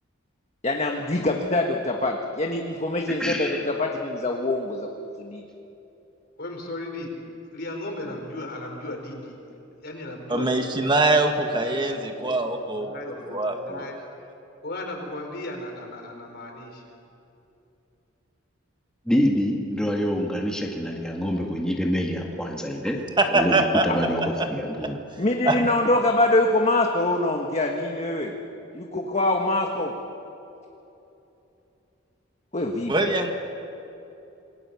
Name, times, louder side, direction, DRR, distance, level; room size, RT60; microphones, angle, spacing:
voice 1, 0.6-5.4 23.9-24.0 25.2-28.3 28.7-29.9 32.5-33.1, left 2 dB, 35° left, 2 dB, 1.5 m, -24 dB
voice 2, 3.2-3.6 19.1-23.0 23.3-25.0, equal, 5° left, -1 dB, 1.9 m, -26 dB
voice 3, 6.4-7.1 7.5-10.8 11.4-14.0 14.6-16.8, left 1 dB, 55° left, 3 dB, 4.5 m, -37 dB
voice 4, 10.3-12.9 13.3-13.8 23.2-24.5 25.4-25.6 32.9-33.3, right 2 dB, 25° right, 4 dB, 1.6 m, -23 dB
27.5 x 21.0 x 7.1 m, 2.9 s
head